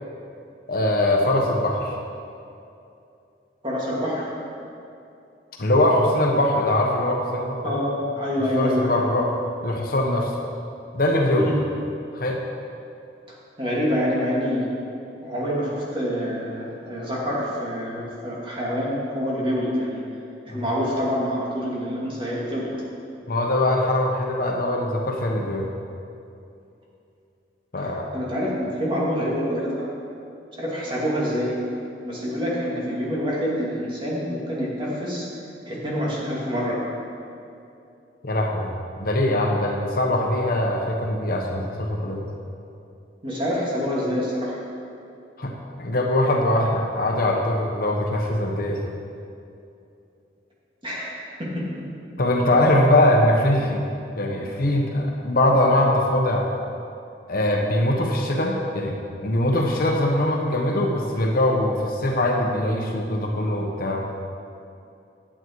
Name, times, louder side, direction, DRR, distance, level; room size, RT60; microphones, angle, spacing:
voice 1, 0.7-1.9 5.6-7.8 8.5-9.3 9.6-10.3 10.9-11.5 12.1-12.4 20.5-20.6 23.3-25.7 27.7-28.1 38.2-38.7 39.0-42.3 45.4-48.8 52.2-53.9 54.2-56.5 57.3-59.0 59.2-64.0, left 1 dB, 55° left, 1 dB, 1.1 m, -22 dB
voice 2, 3.6-4.4 7.6-8.9 11.3-11.5 13.6-14.7 15.2-20.0 20.5-22.6 27.8-29.9 30.5-31.5 32.0-35.3 35.7-36.8 43.2-44.6 50.8-51.1 51.4-51.6, equal, 30° right, -6 dB, 2.6 m, -26 dB
10.5 x 8.7 x 4.7 m, 2.6 s
head